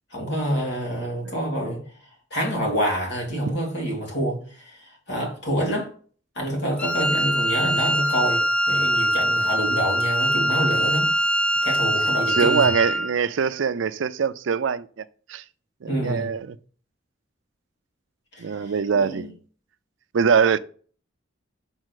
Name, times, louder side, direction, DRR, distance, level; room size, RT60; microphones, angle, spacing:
voice 1, 0.1-1.8 2.3-5.9 6.4-11.1 11.6-12.7 15.9-16.3 18.3-19.3, right 1 dB, 65° left, 2.9 m, -27 dB
Wind instrument woodwind instrument, 6.8-13.1, equal, 5° left, 0.5 m, -23 dB
voice 2, 12.3-15.4 15.8-16.6 18.4-19.4 20.1-20.6, right 6 dB, 80° right, 0.5 m, -23 dB
6.3 x 4.1 x 6.3 m
head